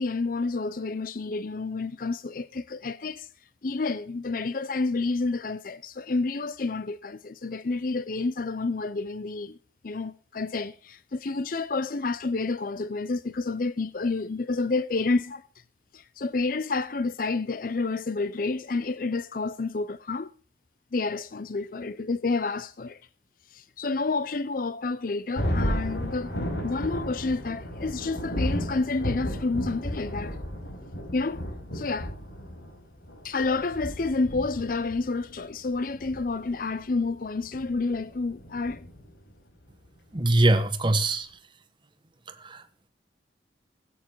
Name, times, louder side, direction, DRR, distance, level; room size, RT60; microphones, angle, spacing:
voice 1, 0.0-3.3 3.6-9.6 9.8-15.4 15.9-20.3 20.9-23.0 23.5-26.3 26.6-30.4 31.1-31.4 31.7-32.2 33.2-38.9, left 3 dB, 50° left, 0.6 m, -29 dB
Thunder, 25.3-39.3, equal, 80° left, 4.9 m, -34 dB
voice 2, 40.1-41.3 42.3-42.9, right 2 dB, 25° right, 1.3 m, -23 dB
16.5 x 9.1 x 4.6 m
head